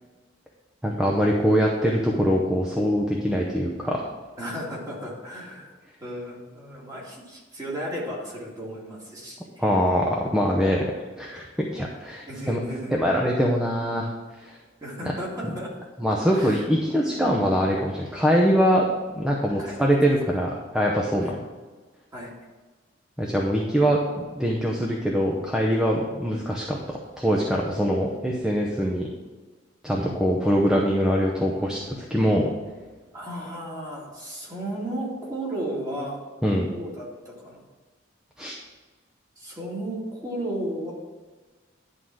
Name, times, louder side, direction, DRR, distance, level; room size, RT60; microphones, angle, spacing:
voice 1, 0.8-4.0 9.6-10.9 11.2-12.6 12.9-14.1 14.4-14.5 15.0-15.1 15.4-15.5 16.0-18.9 19.1-21.4 23.2-29.1 29.8-32.5 36.4-36.7 38.4-38.5, equal, 5° right, -2 dB, 0.8 m, -23 dB
voice 2, 4.4-5.7 6.0-9.4 10.7-10.8 12.3-12.9 14.8-15.7 16.3-16.6 19.6-19.8 21.2-21.3 22.1-22.3 33.1-36.2 36.7-37.6 39.4-40.9, right 1 dB, 20° right, -5 dB, 2.5 m, -34 dB
11.0 x 3.8 x 6.2 m, 1.3 s
head